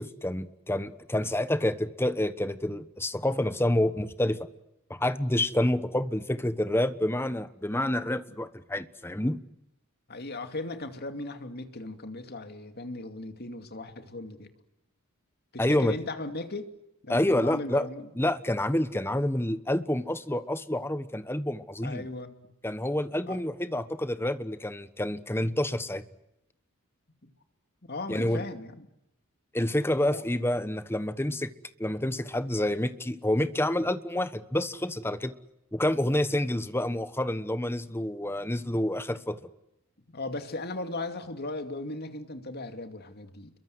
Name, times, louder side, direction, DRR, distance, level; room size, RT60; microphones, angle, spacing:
voice 1, 0.0-4.5 4.9-9.4 15.6-15.9 17.1-17.9 18.2-22.0 22.6-26.0 28.1-28.4 29.5-31.5 31.8-35.4 35.7-39.4, left 1 dB, 10° left, 12 dB, 1.2 m, -28 dB
voice 2, 10.1-14.5 15.5-16.7 17.0-18.1 21.8-22.5 23.3-23.4 27.2-27.3 27.9-28.9 30.0-30.2 31.2-31.4 40.1-43.5, left 2 dB, 45° left, 7 dB, 2.6 m, -37 dB
28.5 x 23.0 x 7.9 m, 0.86 s
head